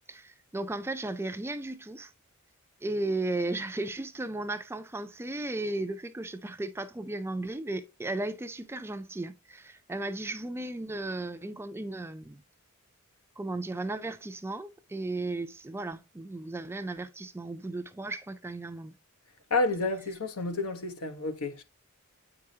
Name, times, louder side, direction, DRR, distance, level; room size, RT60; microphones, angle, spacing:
voice 1, 0.1-2.1 2.8-12.4 13.4-18.9, right 2 dB, 10° right, 0.4 m, -35 dB
voice 2, 19.5-21.6, left 3 dB, 75° left, 1.0 m, -30 dB
8.5 x 4.8 x 2.8 m
head